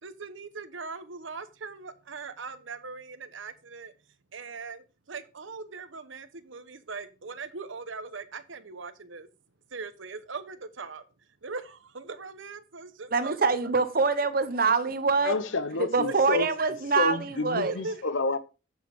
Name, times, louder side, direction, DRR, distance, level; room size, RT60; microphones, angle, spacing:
voice 1, 0.0-3.9 4.3-9.3 9.7-11.0 11.4-13.7 16.0-16.4 17.6-18.0, right 4 dB, 80° right, 1.0 m, -40 dB
voice 2, 13.1-15.3 15.8-17.7, right 4 dB, 50° right, 0.9 m, -25 dB
voice 3, 15.2-16.5 17.0-18.4, left 3 dB, 80° left, 0.9 m, -29 dB
8.0 x 7.3 x 3.6 m
head